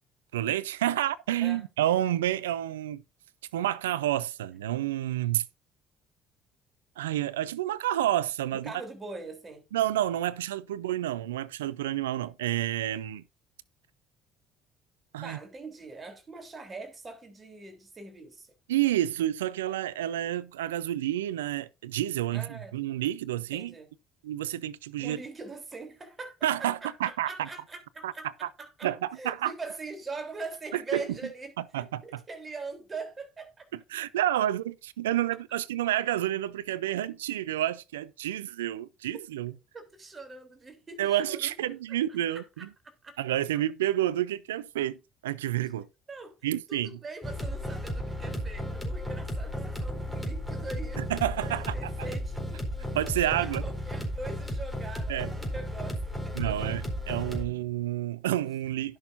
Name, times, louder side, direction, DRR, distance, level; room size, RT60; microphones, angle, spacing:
voice 1, 0.3-3.0 3.5-5.4 7.0-8.7 9.7-13.2 15.1-15.4 18.7-23.7 24.2-25.2 26.4-27.5 28.0-28.1 28.8-29.5 30.9-31.0 31.7-32.0 33.9-39.5 41.0-42.4 43.2-45.9 46.4-47.0 51.0-51.7 52.9-53.6 55.1-55.3 56.4-59.0, right 13 dB, 85° right, 0.5 m, -29 dB
voice 2, 8.5-9.6 15.2-18.6 22.3-22.9 23.5-23.9 25.0-33.7 36.9-37.0 39.7-42.0 42.3-43.2 46.1-46.4 46.7-51.0 51.5-52.9 53.2-56.6, right 3 dB, 30° right, 3.5 m, -42 dB
sound 1, 47.2-57.5, equal, ahead, 4.1 m, -34 dB
16.5 x 6.4 x 2.6 m
hypercardioid pair, 55°, 0 cm